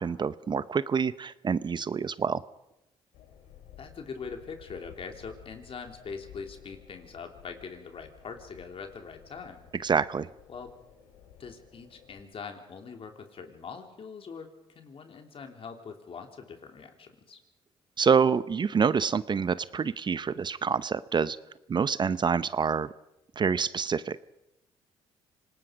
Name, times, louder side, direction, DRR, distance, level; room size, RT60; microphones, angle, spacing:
voice 1, 0.0-2.4 9.8-10.3 18.0-21.4 21.7-22.9 23.4-24.2, right 6 dB, 40° right, 16 dB, 0.7 m, -27 dB
sound 1, 3.1-12.2, left 9 dB, 85° left, 3.5 m, -54 dB
voice 2, 3.8-9.7 10.5-10.7 11.4-14.5 14.7-17.4, left 5 dB, 50° left, 5 dB, 3.3 m, -42 dB
27.0 x 19.0 x 5.2 m, 0.90 s
supercardioid pair, 65°, 12 cm